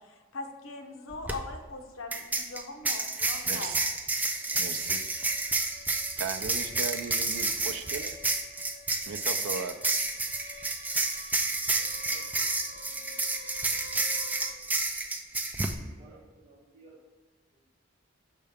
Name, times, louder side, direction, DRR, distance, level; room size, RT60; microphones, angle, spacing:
voice 1, 0.0-3.7 4.5-4.6, left 3 dB, 80° left, 5 dB, 0.8 m, -41 dB
sound 1, 1.1-1.3 2.1-15.7, right 3 dB, 10° right, 0.3 m, -30 dB
voice 2, 3.4-3.8 4.6-5.0 6.2-8.2 9.1-9.7, right 5 dB, 80° right, 8 dB, 0.5 m, -36 dB
sound 2, 3.8-14.5, left 3 dB, 45° left, 0.8 m, -51 dB
voice 3, 11.7-12.2 15.7-17.0, right 3 dB, 35° right, -3 dB, 1.4 m, -56 dB
6.6 x 5.5 x 3.5 m, 1.3 s
head